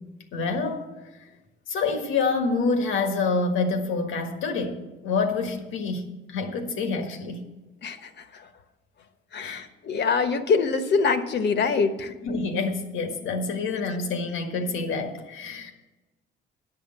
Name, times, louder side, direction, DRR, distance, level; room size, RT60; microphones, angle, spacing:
voice 1, 0.3-0.9 1.7-7.4 9.4-9.6 12.2-15.7, left 4 dB, 90° left, 5 dB, 1.6 m, -27 dB
voice 2, 7.8-8.5 9.3-12.1, left 5 dB, 60° left, 9 dB, 1.1 m, -24 dB
10.0 x 6.5 x 7.8 m, 1.1 s
cardioid pair, 90°, 20 cm